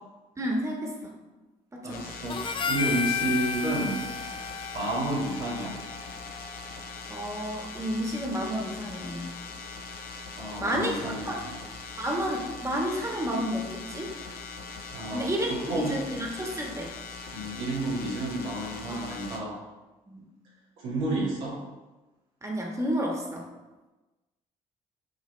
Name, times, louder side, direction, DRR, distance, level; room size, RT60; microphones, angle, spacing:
voice 1, 0.4-1.1 1.8-2.1 7.1-9.3 10.6-10.9 11.3-11.4 12.0-14.1 15.1-16.9 18.9-19.0 20.1-20.2 22.4-23.5, equal, 20° right, -1 dB, 1.6 m, -31 dB
voice 2, 1.8-4.0 4.7-5.8 10.4-11.6 14.9-16.0 17.3-19.6 20.8-21.6, right 2 dB, 85° right, -7 dB, 2.0 m, -31 dB
sound 1, 1.9-19.4, left 4 dB, 65° left, 0.8 m, -41 dB
Harmonica, 2.3-6.8, left 6 dB, 30° left, 0.4 m, -33 dB
8.9 x 3.3 x 3.3 m, 1.1 s
hypercardioid pair, 50°, 17 cm